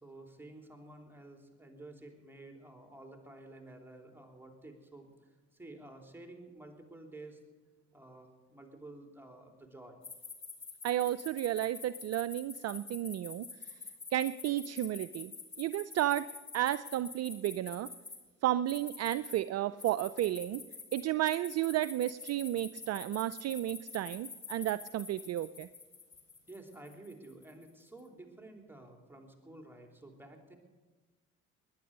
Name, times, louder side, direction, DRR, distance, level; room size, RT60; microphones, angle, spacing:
voice 1, 0.0-7.4 7.9-10.0 26.5-30.6, right 2 dB, 5° right, 3 dB, 3.4 m, -51 dB
sound 1, 10.0-18.2 18.7-19.4 19.8-27.6, left 4 dB, 35° left, 3.7 m, -46 dB
voice 2, 10.8-13.5 14.1-15.3 15.6-16.3 16.5-17.9 18.4-20.6 20.9-25.7, right 13 dB, 45° right, 15 dB, 0.5 m, -32 dB
20.5 x 10.5 x 6.6 m, 1.3 s
hypercardioid pair, 55°, 35 cm